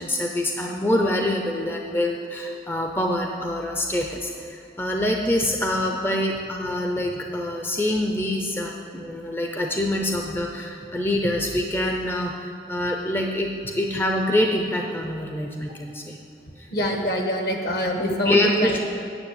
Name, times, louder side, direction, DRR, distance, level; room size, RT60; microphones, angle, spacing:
voice 1, 0.0-13.5 13.8-16.2 16.6-16.7 18.1-18.8, left 1 dB, 10° left, 2 dB, 0.6 m, -25 dB
voice 2, 16.7-18.8, equal, 60° left, 2 dB, 1.4 m, -25 dB
9.8 x 6.8 x 8.8 m, 2.7 s
head